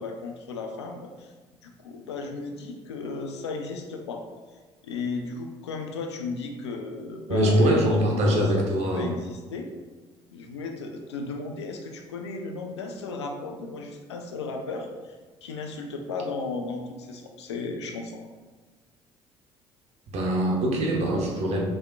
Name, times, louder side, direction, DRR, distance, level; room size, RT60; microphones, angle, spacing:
voice 1, 0.0-1.3 1.6-4.2 4.8-7.7 8.1-8.6 8.9-9.7 10.3-15.2 15.4-18.2, left 3 dB, 75° left, 3 dB, 0.4 m, -35 dB
voice 2, 7.3-9.2 20.1-21.6, equal, 50° right, -1 dB, 0.8 m, -23 dB
4.1 x 3.4 x 2.2 m, 1.3 s
figure-of-eight pair, 50°, 14 cm